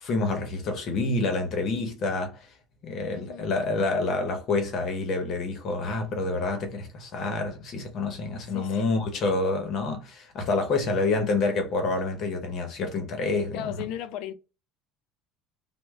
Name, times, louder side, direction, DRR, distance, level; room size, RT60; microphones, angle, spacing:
voice 1, 0.0-2.4 2.8-13.7, left 3 dB, 40° left, 0.8 m, -28 dB
voice 2, 3.1-3.5 8.5-8.8 13.5-14.3, left 10 dB, 60° left, 0.5 m, -36 dB
3.1 x 2.1 x 3.5 m
cardioid pair, 150°, 0 cm